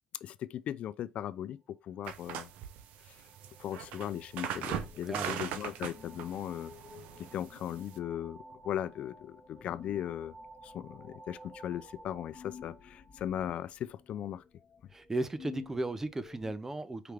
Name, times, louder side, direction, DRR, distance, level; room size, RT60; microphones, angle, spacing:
voice 1, 0.2-2.5 3.6-6.7 7.2-10.3 10.6-14.4, left 10 dB, 60° left, 0.3 m, -38 dB
sound 1, 2.0-13.7, right 2 dB, 50° right, 1.6 m, -56 dB
sound 2, 2.1-8.0, right 9 dB, 75° right, 0.5 m, -40 dB
sound 3, 4.7-16.6, left 7 dB, 35° left, 1.2 m, -54 dB
voice 2, 5.1-5.4 14.9-17.1, right 2 dB, 15° right, 0.5 m, -35 dB
4.9 x 3.2 x 3.0 m
supercardioid pair, 90°, 2 cm